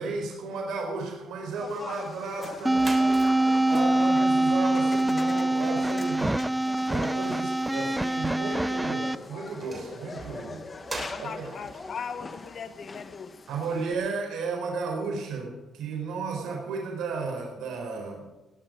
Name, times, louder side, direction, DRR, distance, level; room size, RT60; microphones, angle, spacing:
voice 1, 0.0-2.8 3.4-6.3 6.8-10.6 11.2-11.5 13.5-18.2, right 4 dB, 85° right, 2 dB, 4.1 m, -33 dB
sound 1, 1.5-13.9, left 4 dB, 30° left, 1.3 m, -42 dB
sound 2, 2.3-2.4 2.6-13.4, right 3 dB, 25° right, 3.2 m, -45 dB
sound 3, 2.6-9.1, right 1 dB, 10° right, 0.5 m, -24 dB
voice 2, 11.1-13.4, left 6 dB, 55° left, 9 dB, 1.1 m, -38 dB
18.5 x 11.0 x 5.2 m, 1.1 s
cardioid pair, 90°, 0 cm